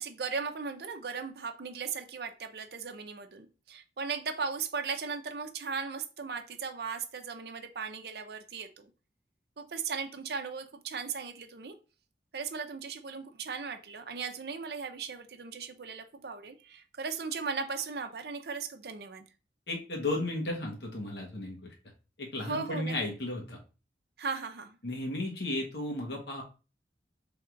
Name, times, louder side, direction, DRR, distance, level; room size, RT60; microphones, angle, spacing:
voice 1, 0.0-8.9 9.6-11.7 12.3-19.3 22.4-23.0 24.2-24.8, right 5 dB, 65° right, 0.6 m, -37 dB
voice 2, 19.7-21.7 22.2-23.6 24.8-26.4, left 2 dB, 80° left, 1.1 m, -34 dB
3.5 x 2.4 x 4.4 m
head